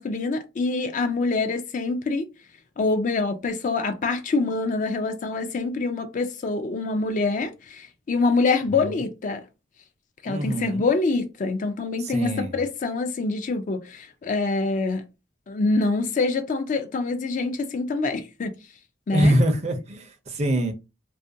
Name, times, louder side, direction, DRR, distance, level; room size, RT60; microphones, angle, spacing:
voice 1, 0.0-2.3 2.8-9.4 10.2-15.0 15.5-18.5 19.1-19.3, left 3 dB, 40° left, 0.3 m, -25 dB
voice 2, 10.3-10.9 12.0-12.6 19.1-20.7, right 1 dB, 35° right, 0.5 m, -24 dB
2.4 x 2.2 x 2.6 m
head